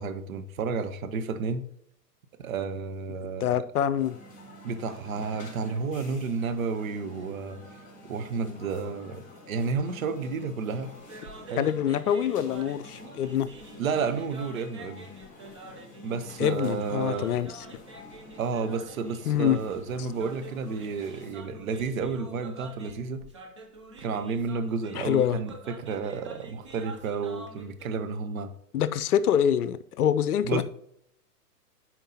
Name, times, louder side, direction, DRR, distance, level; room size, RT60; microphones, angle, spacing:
voice 1, 0.0-1.7 2.4-3.5 4.6-7.6 8.1-10.9 11.5-11.7 13.8-15.1 16.0-17.3 18.4-23.2 24.0-28.5 30.4-30.6, right 5 dB, 60° right, 0.9 m, -31 dB
voice 2, 3.4-4.2 11.6-13.5 16.4-17.6 19.3-19.6 25.0-25.4 28.7-30.6, left 9 dB, 70° left, 0.6 m, -25 dB
sound 1, 4.0-21.3, left 2 dB, 15° left, 2.9 m, -49 dB
sound 2, 11.0-27.9, right 2 dB, 25° right, 0.3 m, -47 dB
10.0 x 4.4 x 2.8 m
figure-of-eight pair, 115°, 48 cm